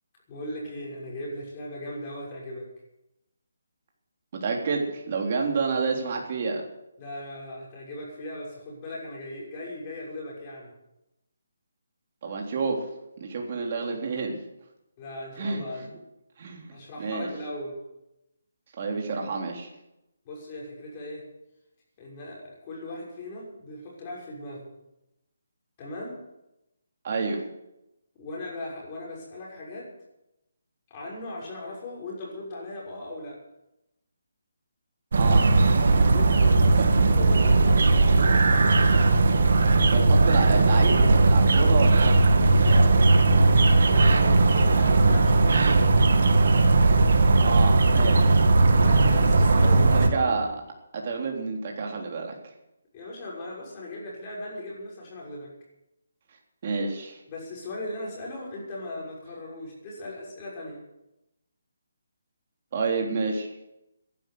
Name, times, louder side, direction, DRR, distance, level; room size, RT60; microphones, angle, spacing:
voice 1, 0.3-2.7 7.0-10.7 15.0-15.9 16.7-17.8 20.2-21.2 22.0-24.7 25.8-26.2 28.1-29.9 30.9-33.4 36.1-38.4 42.6-45.7 48.7-50.3 52.9-55.5 57.3-60.8, left 1 dB, 25° left, -4 dB, 6.1 m, -38 dB
voice 2, 4.4-6.6 12.2-12.8 13.2-14.4 15.4-15.6 16.4-17.3 18.8-19.7 27.0-27.4 35.2-35.5 36.8-36.9 39.9-42.2 47.4-48.4 49.8-50.5 50.9-52.4 56.6-57.2 62.7-63.5, right 4 dB, 35° right, 1 dB, 3.5 m, -29 dB
sound 1, 35.1-50.1, right 3 dB, 60° right, 2.1 m, -18 dB
15.0 x 11.5 x 7.9 m, 0.88 s
hypercardioid pair, 170°, 0 cm